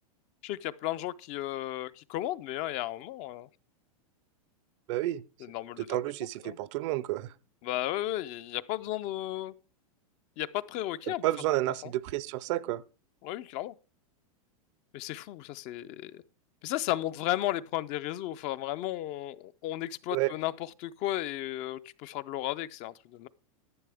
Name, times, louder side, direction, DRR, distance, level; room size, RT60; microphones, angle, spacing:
voice 1, 0.4-3.5 5.4-6.0 6.4-6.6 7.6-9.5 10.4-11.2 11.8-11.9 13.2-13.7 14.9-16.2 16.6-23.3, left 14 dB, 40° left, 0.5 m, -34 dB
voice 2, 4.9-5.2 5.9-7.3 11.1-12.8 20.1-20.3, right 16 dB, 55° right, 0.5 m, -30 dB
11.0 x 9.1 x 3.5 m
hypercardioid pair, 125°, 18 cm